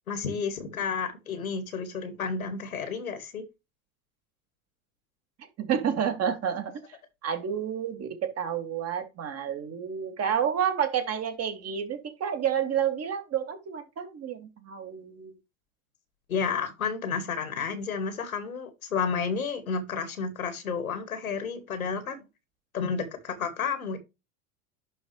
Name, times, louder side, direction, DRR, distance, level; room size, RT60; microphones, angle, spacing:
voice 1, 0.1-3.4 16.3-22.2 22.7-24.0, left 5 dB, 85° left, 2.2 m, -31 dB
voice 2, 5.6-6.8 7.2-15.3, right 8 dB, 35° right, 2.5 m, -30 dB
11.0 x 4.4 x 3.3 m
hypercardioid pair, 85°, 41 cm